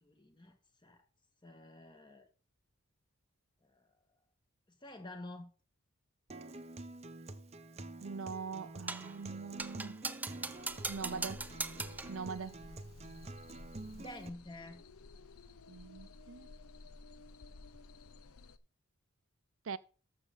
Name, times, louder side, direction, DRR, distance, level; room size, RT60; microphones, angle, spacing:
voice 1, 0.0-0.6 0.8-1.0 1.4-2.3 3.6-3.9 4.7-5.5 13.7-14.8, left 1 dB, 20° left, 1.8 m, -49 dB
Acoustic guitar, 6.3-14.3, right 2 dB, 30° right, 0.8 m, -48 dB
voice 2, 8.0-10.0 10.9-11.5 12.1-12.7 15.7-16.5 19.6-19.8, right 5 dB, 60° right, 0.5 m, -42 dB
sound 1, 8.9-9.2 9.6-12.2, right 3 dB, 10° right, 0.4 m, -40 dB
sound 2, 10.6-18.6, left 3 dB, 80° left, 0.7 m, -55 dB
13.5 x 6.5 x 3.9 m
head